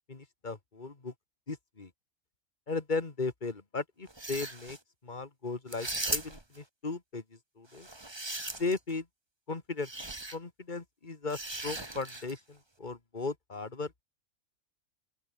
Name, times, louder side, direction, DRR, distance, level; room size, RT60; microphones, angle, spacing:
voice 1, 0.1-1.1 1.5-1.9 2.7-4.8 5.0-7.9 8.6-9.1 9.5-9.9 10.3-14.0, left 3 dB, 35° left, 2.2 m, -36 dB
sound 1, 4.1-4.8 5.7-6.6 7.7-8.9 9.8-10.4 11.3-12.4, right 2 dB, 20° right, 1.9 m, -38 dB
open air
omnidirectional pair, 1.5 m